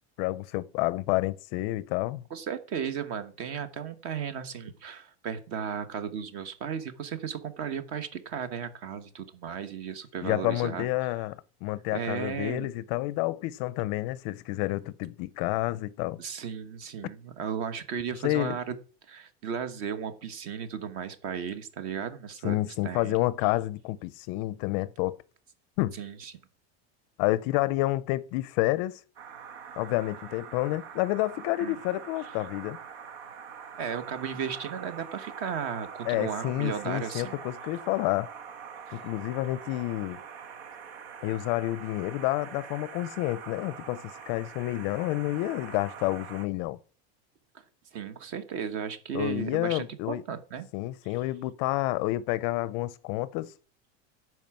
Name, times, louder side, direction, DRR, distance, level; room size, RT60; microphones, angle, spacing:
voice 1, 0.2-2.3 10.2-16.2 18.2-18.6 22.4-25.2 25.8-26.0 27.2-29.0 29.8-32.8 36.1-38.3 38.9-40.2 41.2-46.8 49.1-50.2 50.7-53.5, left 18 dB, 45° left, 0.5 m, -29 dB
voice 2, 2.3-11.2 11.9-12.7 16.2-18.7 19.1-23.2 25.9-26.3 31.6-31.8 33.8-37.3 38.9-39.0 47.9-50.7, right 7 dB, 45° right, 1.3 m, -35 dB
sound 1, 29.2-46.5, right 7 dB, 85° right, 1.4 m, -44 dB
10.5 x 4.7 x 7.6 m
supercardioid pair, 165°, 32 cm